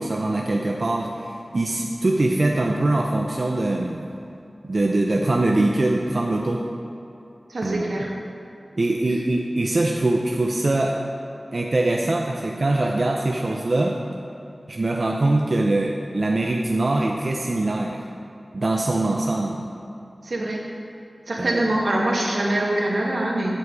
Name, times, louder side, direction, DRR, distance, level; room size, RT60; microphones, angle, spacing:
voice 1, 0.0-4.0 4.7-6.6 7.6-8.0 8.8-11.0 11.5-14.0 14.7-18.0 18.5-19.7 21.4-21.6, right 2 dB, 55° right, 0 dB, 0.7 m, -23 dB
voice 2, 7.5-8.1 20.2-20.6 21.3-23.6, right 1 dB, 85° right, -2 dB, 2.0 m, -24 dB
15.0 x 8.0 x 4.8 m, 2.7 s
wide cardioid pair, 70°, 0 cm